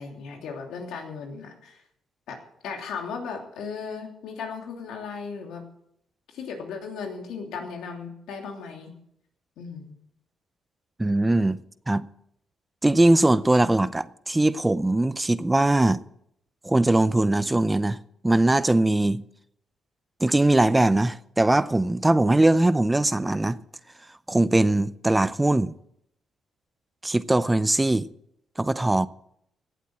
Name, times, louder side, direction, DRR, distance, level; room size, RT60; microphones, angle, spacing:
voice 1, 0.0-1.8 2.3-2.4 2.6-5.6 6.3-8.9 9.6-9.9, left 5 dB, 80° left, 3.1 m, -36 dB
voice 2, 11.0-11.6 11.9-12.1 12.8-16.0 16.6-18.0 18.2-19.2 20.2-23.6 24.3-25.7 27.0-28.1 28.6-29.1, right 2 dB, 15° right, 0.6 m, -21 dB
17.5 x 8.0 x 7.6 m
cardioid pair, 90°, 0 cm